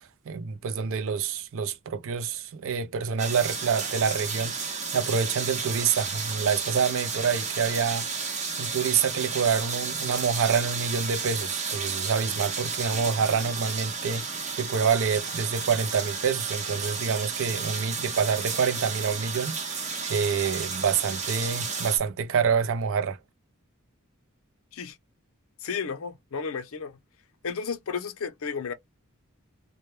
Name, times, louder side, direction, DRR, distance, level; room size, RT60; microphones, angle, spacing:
voice 1, 0.3-4.5 4.9-8.2 8.6-14.2 14.6-23.2, right 6 dB, 65° right, 0.5 m, -27 dB
sound 1, 3.2-22.0, right 5 dB, 35° right, 0.8 m, -32 dB
voice 2, 25.6-27.0 27.4-28.7, left 5 dB, 65° left, 0.6 m, -33 dB
2.1 x 2.1 x 3.0 m
head